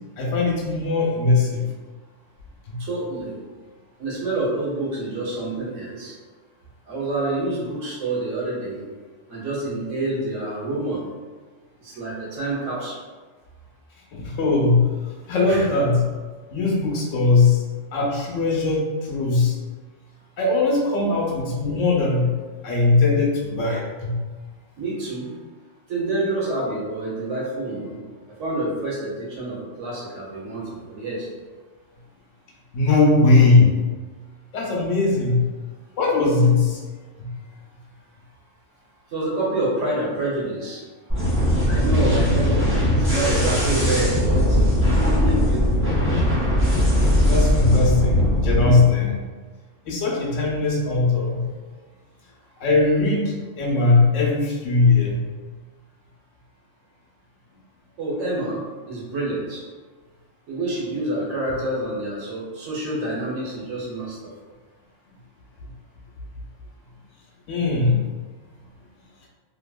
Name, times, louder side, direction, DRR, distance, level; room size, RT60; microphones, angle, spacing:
voice 1, 0.2-1.7 2.7-2.8 14.1-14.9 15.3-16.0 16.5-17.6 17.9-19.6 20.4-22.3 22.6-24.2 32.7-33.8 34.5-35.4 36.0-36.8 37.2-37.3 47.3-49.3 49.9-51.4 52.6-55.2 67.5-68.1, left 3 dB, 75° left, -2 dB, 1.0 m, -19 dB
voice 2, 2.8-3.4 4.0-6.1 6.9-8.8 9.3-11.0 11.8-13.0 15.5-15.7 24.8-25.3 25.9-28.0 28.4-31.3 39.1-40.8 41.7-46.2 58.0-58.6 58.9-59.6 60.5-64.2, right 2 dB, 70° right, -6 dB, 1.2 m, -27 dB
sound 1, 41.1-48.7, equal, 15° right, 0.6 m, -19 dB
2.7 x 2.7 x 2.3 m, 1.4 s
omnidirectional pair, 1.3 m